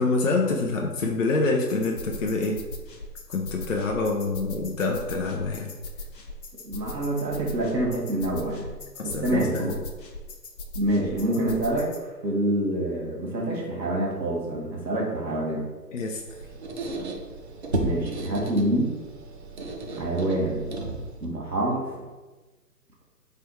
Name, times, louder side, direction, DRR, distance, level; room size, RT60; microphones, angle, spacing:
voice 1, 0.0-2.6 3.3-5.7 9.0-9.8 15.9-16.2, left 3 dB, 55° left, 1 dB, 0.5 m, -26 dB
sound 1, 1.7-12.0, left 1 dB, 80° left, 0.8 m, -40 dB
voice 2, 6.6-8.7 9.0-9.7 10.7-11.9 12.2-15.7 17.8-18.9 19.9-20.7 21.2-21.9, right 1 dB, 80° right, 0 dB, 1.4 m, -26 dB
Squeak, 16.1-21.3, right 2 dB, 45° right, 0.5 m, -33 dB
3.4 x 2.3 x 4.3 m, 1.2 s
figure-of-eight pair, 150°, 49 cm